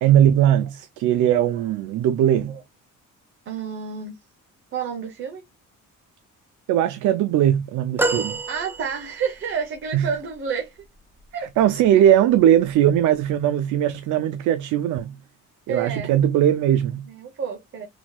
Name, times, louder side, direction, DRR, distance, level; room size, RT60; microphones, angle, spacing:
voice 1, 0.0-2.6 6.7-8.4 9.9-10.1 11.6-15.2 15.7-17.1, right 11 dB, 70° right, 0.5 m, -19 dB
voice 2, 3.5-4.1 4.7-5.4 8.5-10.8 11.3-11.5 15.7-16.1 17.1-17.9, right 6 dB, 40° right, 0.9 m, -29 dB
sound 1, 8.0-9.4 10.1-10.2, right 2 dB, 5° right, 0.4 m, -27 dB
3.8 x 2.9 x 2.3 m
cardioid pair, 170°, 31 cm